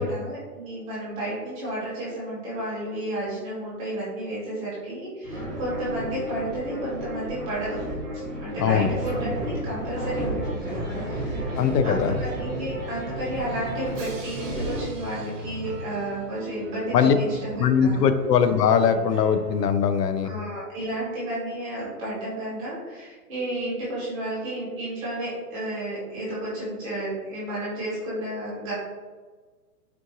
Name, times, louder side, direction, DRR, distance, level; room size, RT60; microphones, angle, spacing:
voice 1, 0.0-7.8 8.1-11.6 11.8-18.0 20.2-28.7, right 1 dB, 20° right, -9 dB, 1.3 m, -32 dB
sound 1, 5.2-14.8, right 1 dB, ahead, 0.7 m, -32 dB
voice 2, 11.5-12.1 16.9-17.1 17.6-20.3, left 7 dB, 85° left, 9 dB, 0.6 m, -21 dB
Drum, 11.6-16.4, right 4 dB, 50° right, 0.8 m, -39 dB
sound 2, 14.7-19.7, right 2 dB, 85° right, 0.6 m, -40 dB
4.4 x 2.5 x 2.6 m, 1.4 s
hypercardioid pair, 165°, 47 cm